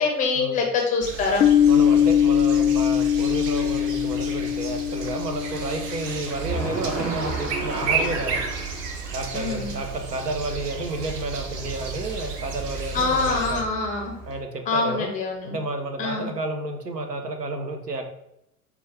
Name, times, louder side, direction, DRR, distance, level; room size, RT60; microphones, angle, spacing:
voice 1, 0.0-1.4 9.3-9.8 12.9-14.1 14.7-15.6 16.0-16.3, left 4 dB, 15° left, 2 dB, 0.5 m, -25 dB
sound 1, 1.0-13.6, right 5 dB, 35° right, 0.6 m, -33 dB
Piano, 1.4-6.8, left 9 dB, 75° left, 0.5 m, -21 dB
voice 2, 1.7-8.4 9.1-13.6 14.3-15.1 15.4-18.0, right 2 dB, 90° right, 5 dB, 0.7 m, -31 dB
sound 2, 5.4-14.4, right 3 dB, 60° right, 1.0 m, -35 dB
4.9 x 2.3 x 3.4 m, 0.79 s
figure-of-eight pair, 90°, 46 cm